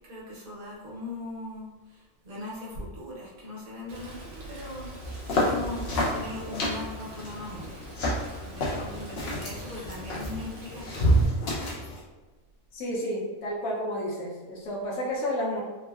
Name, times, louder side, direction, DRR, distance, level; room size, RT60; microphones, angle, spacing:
voice 1, 0.1-4.9 5.4-5.8 6.1-7.8 8.4-11.2, left 2 dB, 75° right, -6 dB, 1.3 m, -39 dB
Rain, 3.9-11.3, equal, 55° right, 0.8 m, -44 dB
sound 1, 5.0-12.0, equal, 60° left, 0.7 m, -29 dB
voice 2, 12.7-15.6, equal, 80° left, -3 dB, 1.1 m, -31 dB
3.4 x 2.1 x 2.3 m, 1.3 s
omnidirectional pair, 1.5 m